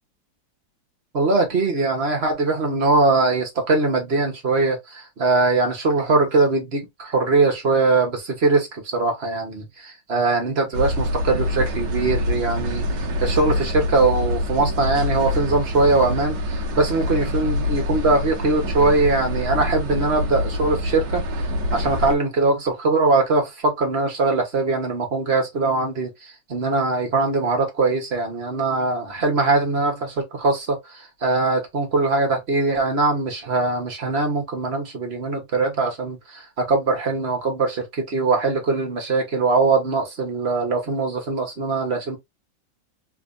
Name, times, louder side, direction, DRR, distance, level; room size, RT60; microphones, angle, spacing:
voice 1, 1.1-21.2 21.7-42.2, right 3 dB, 40° right, 1.3 m, -21 dB
sound 1, 10.7-22.2, left 1 dB, 75° right, 1.5 m, -25 dB
3.3 x 3.3 x 2.5 m
omnidirectional pair, 2.0 m